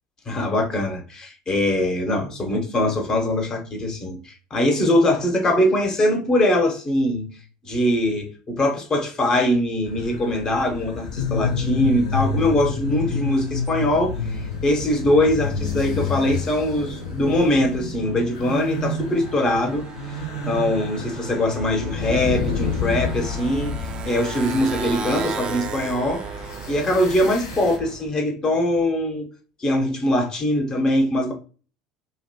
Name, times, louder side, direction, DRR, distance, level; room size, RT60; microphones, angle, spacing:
voice 1, 0.3-7.3 7.7-19.9 20.5-26.2 26.7-29.3 29.6-31.3, left 1 dB, 30° left, 0.9 m, -22 dB
sound 1, 9.8-27.8, left 4 dB, 70° left, 0.5 m, -29 dB
Motorcycle, 12.8-28.1, right 6 dB, 35° right, 0.4 m, -37 dB
2.7 x 2.1 x 2.7 m
figure-of-eight pair, 65°, 3 cm